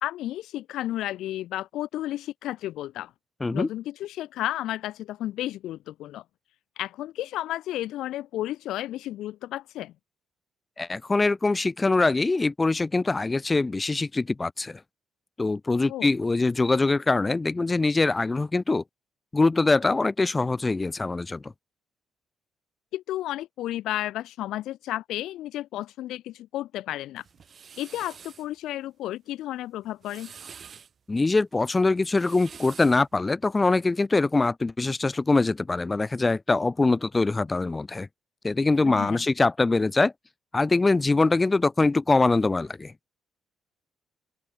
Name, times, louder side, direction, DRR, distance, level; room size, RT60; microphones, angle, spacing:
voice 1, 0.0-3.1 3.5-6.2 6.8-9.9 15.9-16.1 22.9-27.2 27.8-30.3 38.8-39.2, left 14 dB, 85° left, 1.6 m, -32 dB
voice 2, 10.8-14.8 15.4-18.8 19.3-21.5 31.1-38.1 38.4-40.1 40.5-42.9, left 3 dB, 20° left, 1.4 m, -23 dB
sound 1, 27.2-28.5 29.8-30.9 32.0-33.1, right 6 dB, 45° right, 2.7 m, -47 dB
open air
cardioid pair, 90°, 0 cm